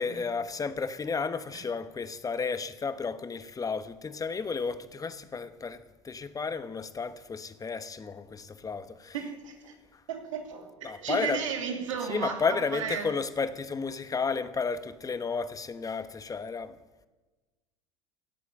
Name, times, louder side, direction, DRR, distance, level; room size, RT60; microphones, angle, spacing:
voice 1, 0.0-9.1 10.8-11.4 12.1-16.7, left 5 dB, 20° left, 1.1 m, -32 dB
voice 2, 9.1-9.7 10.1-13.1, right 7 dB, 85° right, 2.8 m, -34 dB
16.5 x 8.3 x 9.0 m
hypercardioid pair, 80°, 16 cm